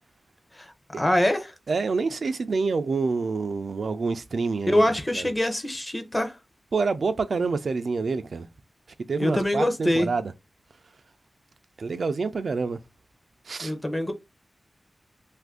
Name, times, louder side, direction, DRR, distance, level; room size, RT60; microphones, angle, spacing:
voice 1, 0.5-1.5 4.7-6.4 9.2-10.1 13.6-14.1, left 1 dB, 15° left, 0.6 m, -24 dB
voice 2, 1.7-4.9 5.1-5.3 6.7-8.5 9.1-10.3 11.8-12.8 13.5-13.7, right 4 dB, 65° right, 0.3 m, -27 dB
2.6 x 2.5 x 3.5 m
wide cardioid pair, 120°, 0 cm